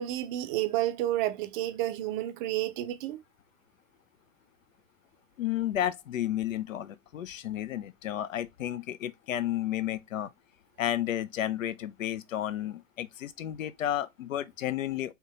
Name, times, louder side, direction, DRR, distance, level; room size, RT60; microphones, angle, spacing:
voice 1, 0.0-3.2, right 14 dB, 40° right, 0.5 m, -30 dB
voice 2, 5.4-10.3 10.8-15.1, left 12 dB, 80° left, 0.5 m, -32 dB
3.6 x 2.8 x 2.9 m
hypercardioid pair, 100°, 39 cm